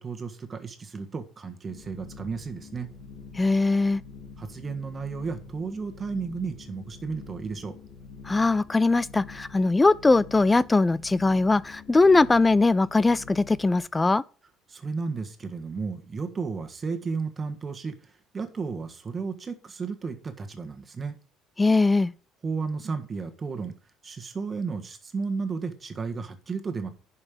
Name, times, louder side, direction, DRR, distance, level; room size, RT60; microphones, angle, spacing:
voice 1, 0.0-2.9 4.4-7.8 14.7-18.0 18.3-21.1 22.4-23.7 24.0-26.9, right 4 dB, 25° right, 1.6 m, -33 dB
sound 1, 1.7-13.8, left 5 dB, 60° left, 3.9 m, -46 dB
voice 2, 3.4-4.0 8.3-14.2 21.6-22.1, left 3 dB, 15° left, 0.4 m, -21 dB
10.5 x 5.6 x 5.2 m
cardioid pair, 145°, 0 cm